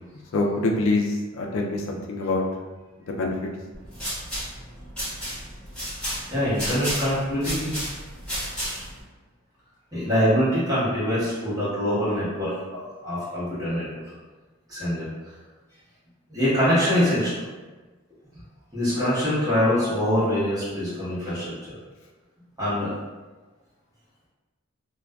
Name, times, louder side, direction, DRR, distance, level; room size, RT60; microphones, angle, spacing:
voice 1, 0.3-2.4 3.1-3.3, left 2 dB, 65° left, 1 dB, 0.4 m, -25 dB
sound 1, 3.7-9.0, equal, 5° left, 1.1 m, -32 dB
voice 2, 6.3-7.7 9.9-13.8 14.7-15.1 16.3-17.5 18.7-21.7 22.6-22.9, equal, 20° right, -11 dB, 1.1 m, -24 dB
2.4 x 2.2 x 2.3 m, 1.3 s
head